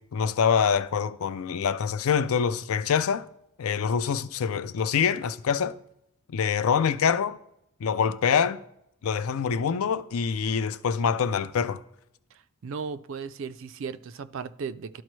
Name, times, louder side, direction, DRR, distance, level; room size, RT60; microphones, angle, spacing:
voice 1, 0.0-3.3 3.6-5.7 6.3-7.4 7.8-8.6 9.0-11.8, left 6 dB, 75° left, 0.4 m, -25 dB
voice 2, 12.6-15.0, right 5 dB, 60° right, 0.4 m, -36 dB
12.5 x 4.3 x 3.1 m
head